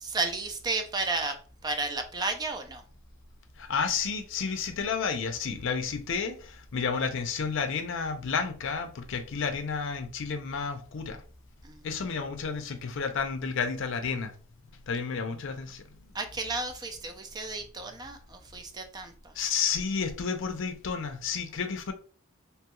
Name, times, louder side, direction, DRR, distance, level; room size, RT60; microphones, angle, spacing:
voice 1, 0.0-2.8 11.6-12.0 16.1-19.3, right 3 dB, 20° right, 0.4 m, -33 dB
voice 2, 3.6-11.2 11.8-14.3 14.9-16.0 19.3-21.9, left 5 dB, 65° left, 0.5 m, -31 dB
3.0 x 2.3 x 2.9 m
head